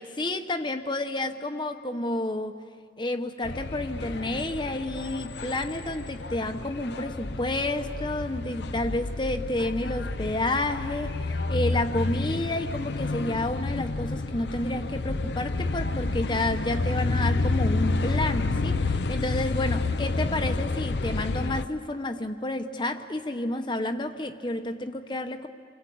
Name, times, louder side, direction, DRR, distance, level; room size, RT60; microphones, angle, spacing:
voice 1, 0.0-2.6 3.0-25.5, left 1 dB, 25° left, 7 dB, 1.0 m, -30 dB
sound 1, 3.4-21.6, left 3 dB, 70° left, 0.7 m, -30 dB
29.0 x 24.0 x 8.6 m, 2.1 s
head